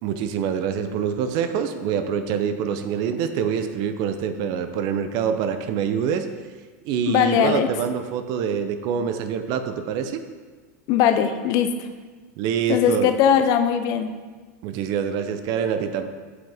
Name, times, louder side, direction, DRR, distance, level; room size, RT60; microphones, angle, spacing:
voice 1, 0.0-6.3 6.8-10.2 12.4-13.1 14.6-16.1, right 7 dB, 50° right, 9 dB, 0.6 m, -25 dB
voice 2, 7.1-7.7 10.9-11.7 12.7-14.1, left 9 dB, 45° left, 8 dB, 0.6 m, -20 dB
7.9 x 5.8 x 3.5 m, 1.4 s
supercardioid pair, 140°, 9 cm